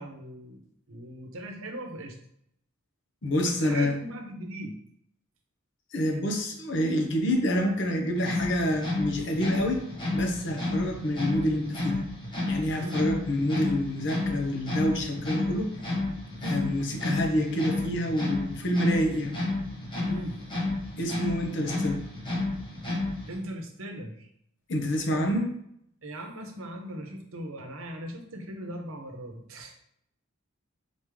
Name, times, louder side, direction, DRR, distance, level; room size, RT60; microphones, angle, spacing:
voice 1, 0.0-2.2 3.4-4.7 12.8-13.0 20.0-20.4 23.3-24.3 25.1-25.2 26.0-29.8, right 1 dB, 75° right, 3 dB, 0.8 m, -39 dB
voice 2, 3.2-3.9 5.9-9.9 10.1-12.0 12.5-15.7 16.4-19.4 21.0-22.0 24.7-25.5, equal, 60° left, 2 dB, 0.8 m, -27 dB
sound 1, 8.2-23.4, left 2 dB, 25° left, 1.2 m, -31 dB
4.2 x 3.5 x 3.2 m, 0.71 s
head